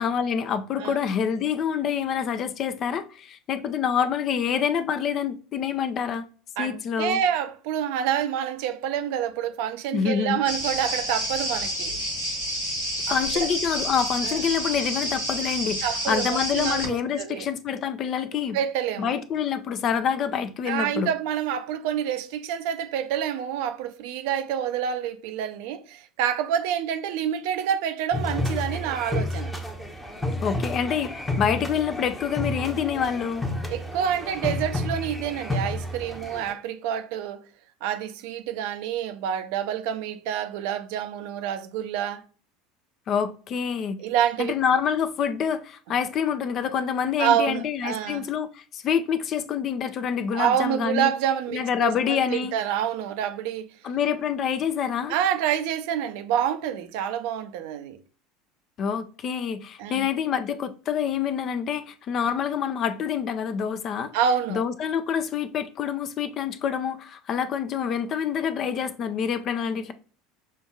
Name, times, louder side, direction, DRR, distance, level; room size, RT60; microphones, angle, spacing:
voice 1, 0.0-6.3 6.6-7.2 9.9-10.4 13.1-18.6 19.0-21.1 30.4-33.5 43.1-44.0 44.4-51.1 51.5-52.5 53.8-55.1 58.8-64.1 64.5-69.9, left 7 dB, 40° left, 0.4 m, -27 dB
voice 2, 6.6-12.0 13.1-13.5 14.2-14.4 15.8-17.5 18.5-19.2 20.7-29.5 33.7-37.4 37.8-42.2 44.0-44.6 47.2-48.2 50.3-53.7 55.1-58.0 59.8-60.1 64.1-64.6, right 9 dB, 55° right, 0.5 m, -27 dB
sound 1, 10.4-16.9, equal, 75° left, 1.2 m, -29 dB
sound 2, 28.1-36.5, left 1 dB, 10° left, 0.8 m, -31 dB
6.3 x 2.6 x 2.2 m
figure-of-eight pair, 75°, 0 cm